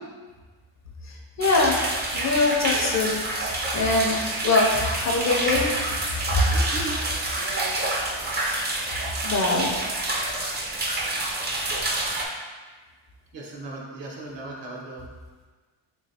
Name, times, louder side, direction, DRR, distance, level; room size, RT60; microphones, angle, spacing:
voice 1, 1.0-1.8 2.1-5.7 6.3-6.4 9.2-9.8, left 3 dB, 40° left, 0 dB, 0.4 m, -23 dB
sound 1, 1.4-12.3, right 2 dB, 25° right, 0.4 m, -28 dB
voice 2, 6.5-7.0 7.4-7.7 13.3-15.0, right 2 dB, 65° right, -3 dB, 0.9 m, -37 dB
3.1 x 3.0 x 2.7 m, 1.4 s
cardioid pair, 100°, 47 cm